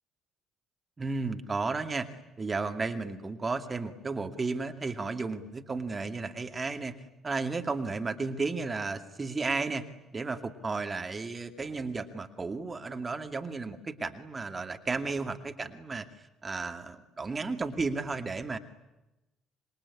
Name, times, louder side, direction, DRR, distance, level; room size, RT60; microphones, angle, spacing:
voice 1, 1.0-2.1 2.4-6.9 7.2-9.8 10.1-18.6, right 3 dB, 30° right, 6 dB, 2.4 m, -33 dB
27.0 x 22.0 x 9.9 m, 1.0 s
hypercardioid pair, 50°, 0 cm